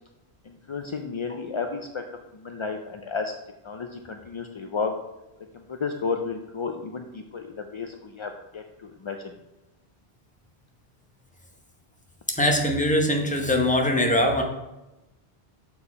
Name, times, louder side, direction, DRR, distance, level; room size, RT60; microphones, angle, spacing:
voice 1, 0.5-2.0 2.3-3.3 3.6-4.9 5.7-9.2, left 5 dB, 55° left, 4 dB, 0.3 m, -32 dB
voice 2, 12.4-14.4, left 1 dB, 10° left, 2 dB, 0.8 m, -22 dB
6.7 x 4.7 x 4.1 m, 0.99 s
omnidirectional pair, 1.0 m